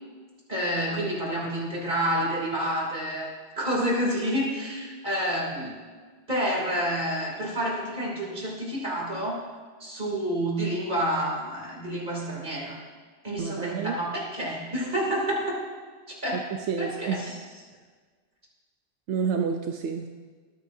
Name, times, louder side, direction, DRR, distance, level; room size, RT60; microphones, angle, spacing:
voice 1, 0.5-3.3 3.6-5.8 6.3-9.4 9.8-12.8 13.2-15.6 16.1-16.5 16.8-17.3, equal, 45° right, -3 dB, 3.3 m, -29 dB
voice 2, 13.4-14.0 16.3-17.2 19.1-20.1, right 6 dB, 85° right, 4 dB, 1.0 m, -29 dB
21.5 x 9.3 x 2.7 m, 1.5 s
omnidirectional pair, 1.1 m